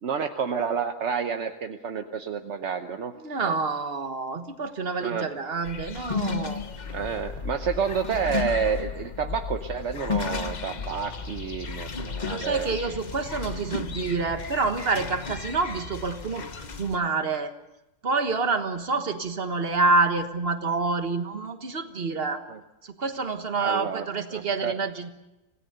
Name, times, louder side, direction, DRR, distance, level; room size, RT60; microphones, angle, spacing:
voice 1, 0.0-3.1 3.4-3.5 5.0-5.3 6.9-12.7 22.5-22.6 23.6-24.8, right 6 dB, 50° right, 6 dB, 0.9 m, -29 dB
voice 2, 3.2-6.6 12.3-16.4 16.8-17.5 18.0-22.4 23.0-25.1, right 3 dB, 35° right, 7 dB, 1.4 m, -27 dB
sound 1, 5.6-17.0, left 5 dB, 45° left, 0.5 m, -34 dB
26.0 x 17.5 x 6.7 m, 0.97 s
omnidirectional pair, 2.1 m